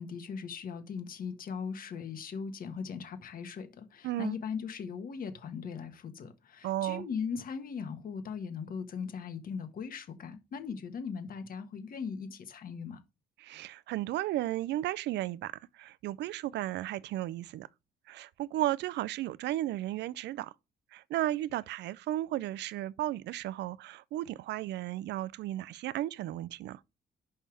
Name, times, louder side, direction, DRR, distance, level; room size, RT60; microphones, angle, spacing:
voice 1, 0.0-13.0, left 6 dB, 55° left, 1.4 m, -39 dB
voice 2, 4.0-4.4 6.6-7.1 13.4-17.7 18.1-20.5 20.9-26.8, right 14 dB, 85° right, 0.4 m, -34 dB
5.6 x 5.5 x 6.1 m
cardioid pair, 120°, 18 cm